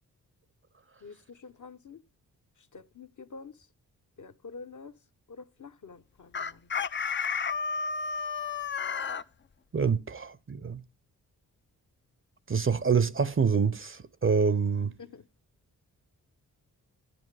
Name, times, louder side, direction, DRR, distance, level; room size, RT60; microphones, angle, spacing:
voice 1, 1.0-2.0 2.6-3.7 4.2-4.9 5.3-6.7 15.0-15.2, left 4 dB, 50° left, 1.0 m, -47 dB
Chicken rooster, 6.3-9.2, left 6 dB, 30° left, 0.5 m, -31 dB
voice 2, 9.7-10.8 12.5-14.9, right 5 dB, 35° right, 0.7 m, -26 dB
10.5 x 7.9 x 4.8 m
supercardioid pair, 40°, 39 cm